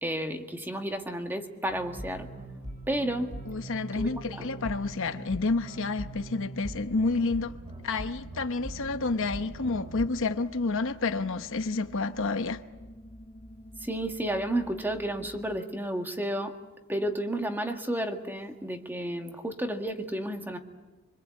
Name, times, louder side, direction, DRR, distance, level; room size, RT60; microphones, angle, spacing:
voice 1, 0.0-2.3 2.9-3.3 3.9-4.4 13.8-16.5 16.9-20.6, right 1 dB, 10° right, 1.9 m, -32 dB
sound 1, 1.7-10.1, right 1 dB, 35° right, 7.2 m, -42 dB
voice 2, 3.5-7.6 7.8-12.6, left 3 dB, 60° left, 0.9 m, -29 dB
sound 2, 6.4-15.6, equal, 20° left, 2.1 m, -49 dB
25.0 x 25.0 x 8.5 m
head